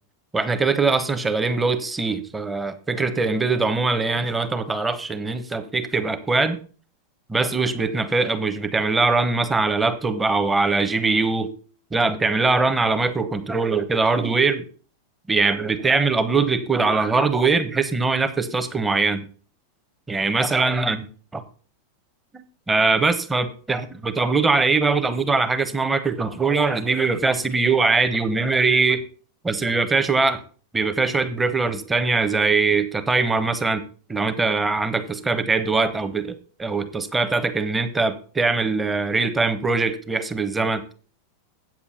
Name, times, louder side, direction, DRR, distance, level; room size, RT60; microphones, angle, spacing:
voice 1, 0.3-6.6 7.3-11.5 11.9-14.6 15.3-19.3 20.1-21.0 22.3-29.0 29.4-30.4 30.7-33.8 34.1-40.8, right 3 dB, 10° right, 9 dB, 1.1 m, -22 dB
8.5 x 7.4 x 5.5 m, 0.39 s
figure-of-eight pair, 90°, 0 cm